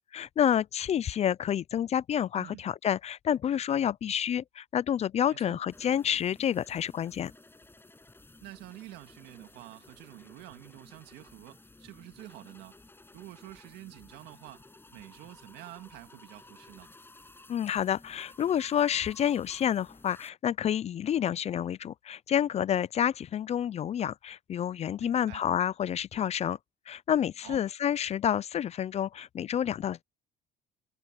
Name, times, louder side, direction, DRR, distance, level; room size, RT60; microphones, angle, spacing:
voice 1, 0.1-7.3 17.5-26.6 26.9-30.0, left 9 dB, 40° left, 0.4 m, -29 dB
sound 1, 5.7-20.3, left 2 dB, 15° left, 6.8 m, -55 dB
voice 2, 8.4-12.7 13.1-14.6 14.9-16.9 25.0-25.4 27.4-27.6, right 16 dB, 90° right, 2.0 m, -48 dB
cardioid pair, 110°, 17 cm